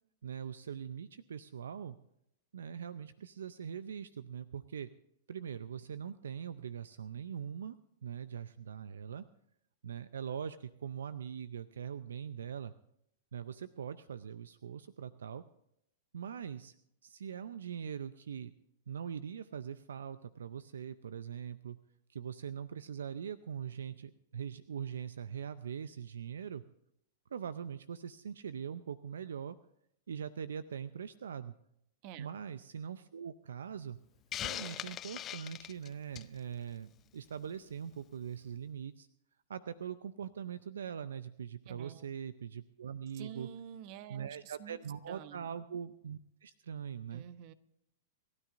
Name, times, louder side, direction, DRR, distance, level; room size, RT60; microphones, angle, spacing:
voice 1, 0.2-2.0 2.5-4.9 5.3-9.3 9.8-12.7 13.3-15.4 16.1-16.7 17.0-18.5 18.9-21.8 22.1-26.6 27.3-29.6 30.1-31.5 32.2-34.0 34.4-39.1 39.5-43.5 44.1-47.2, right 8 dB, 80° right, 15 dB, 0.5 m, -42 dB
Hiss, 34.3-36.4, left 11 dB, 30° left, 0.6 m, -40 dB
voice 2, 41.7-42.1 43.1-44.8 45.1-45.5 47.1-47.5, right 10 dB, 50° right, 12 dB, 1.1 m, -48 dB
28.5 x 13.0 x 2.6 m, 0.76 s
hypercardioid pair, 110°, 0 cm